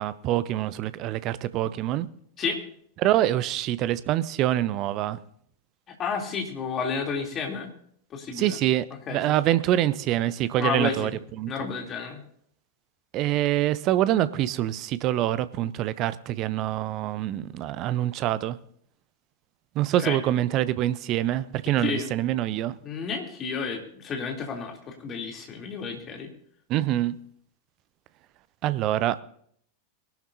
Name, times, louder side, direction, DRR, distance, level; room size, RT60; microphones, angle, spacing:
voice 1, 0.0-2.1 3.0-5.2 8.4-8.8 9.1-11.1 11.4-11.5 13.1-18.6 19.7-22.7 26.7-27.2 28.6-29.2, right 13 dB, 40° right, 16 dB, 0.7 m, -25 dB
voice 2, 5.9-7.7 8.1-8.6 9.1-9.4 10.6-11.2 11.5-12.2 20.0-20.2 21.8-22.1 22.8-26.3, left 5 dB, 30° left, 1 dB, 3.2 m, -31 dB
22.0 x 12.0 x 2.8 m, 0.65 s
figure-of-eight pair, 90°, 0 cm